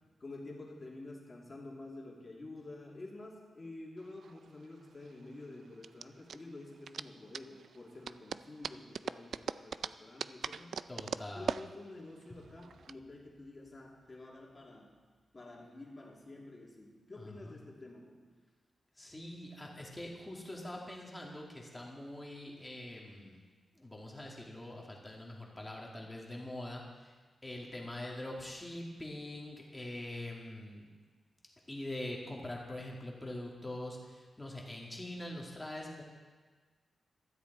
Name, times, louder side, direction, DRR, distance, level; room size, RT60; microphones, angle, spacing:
voice 1, 0.2-10.8 11.3-15.0 15.3-18.2, left 2 dB, 30° left, -2 dB, 2.7 m, -49 dB
sound 1, 4.0-12.9, right 6 dB, 65° right, 0.3 m, -42 dB
voice 2, 10.9-11.6 12.3-12.4 17.2-17.6 19.0-23.4 23.8-27.1 27.4-30.9 31.7-36.0, left 1 dB, 10° left, -2 dB, 2.3 m, -44 dB
15.5 x 13.5 x 4.1 m, 1.4 s
wide cardioid pair, 150°, 0 cm